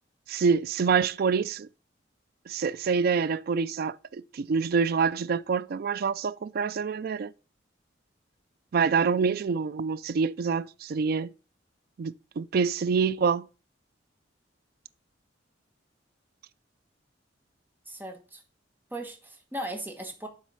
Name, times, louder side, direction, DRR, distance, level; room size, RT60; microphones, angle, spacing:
voice 1, 0.3-1.7 2.5-7.3 8.7-11.3 12.0-13.5, right 5 dB, 55° right, 0.4 m, -26 dB
voice 2, 17.9-18.4 18.9-20.3, right 1 dB, 10° right, 1.3 m, -37 dB
7.5 x 4.1 x 5.5 m
head